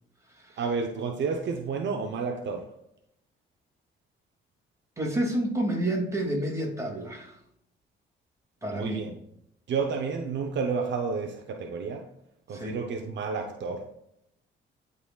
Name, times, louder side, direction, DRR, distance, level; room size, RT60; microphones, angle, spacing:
voice 1, 0.6-2.7 8.7-9.2 9.7-12.1 12.5-13.9, right 5 dB, 65° right, 0.8 m, -31 dB
voice 2, 5.0-7.4 8.6-9.0 12.5-12.8, right 1 dB, 15° right, 2.4 m, -29 dB
11.0 x 4.1 x 2.4 m
cardioid pair, 90°, 20 cm